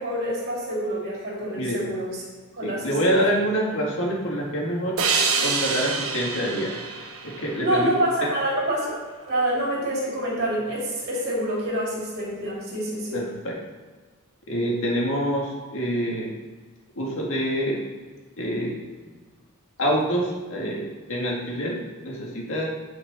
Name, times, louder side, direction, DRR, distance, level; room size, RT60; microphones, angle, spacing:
voice 1, 0.0-2.1 2.5-3.2 7.6-8.9 9.2-13.2, right 1 dB, 50° right, -5 dB, 2.6 m, -26 dB
voice 2, 2.6-5.0 5.4-6.8 7.2-7.9 13.1-13.6 14.5-16.3 16.9-17.8 18.4-18.8 19.8-22.7, equal, 65° left, -2 dB, 2.0 m, -26 dB
sound 1, 5.0-8.3, right 5 dB, 70° right, 1.0 m, -27 dB
9.3 x 5.2 x 4.1 m, 1.4 s
head